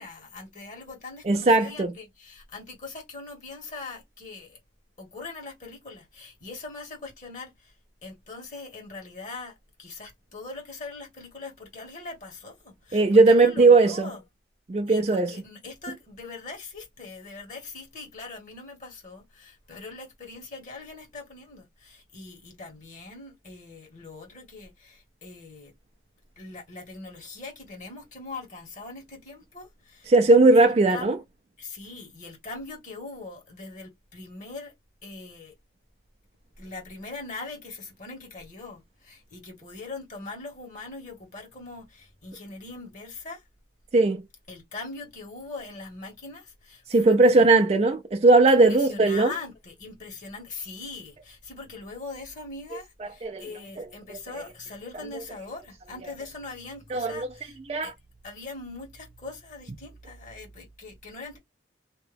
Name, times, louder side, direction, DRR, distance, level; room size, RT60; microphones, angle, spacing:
voice 1, 0.0-4.6 5.0-7.7 8.0-14.2 14.9-25.7 26.3-30.1 30.5-31.2 31.6-34.7 35.0-35.5 36.6-43.4 44.5-47.5 48.5-57.9 58.2-61.4, left 3 dB, 45° left, 1.5 m, -41 dB
voice 2, 1.3-1.9 12.9-14.1 14.7-15.3 30.1-31.2 43.9-44.2 46.9-49.3 53.2-53.4 53.8-53.9 54.1-54.2 56.9-57.3 57.7-57.9, right 3 dB, 35° right, 0.4 m, -18 dB
2.8 x 2.3 x 3.3 m
head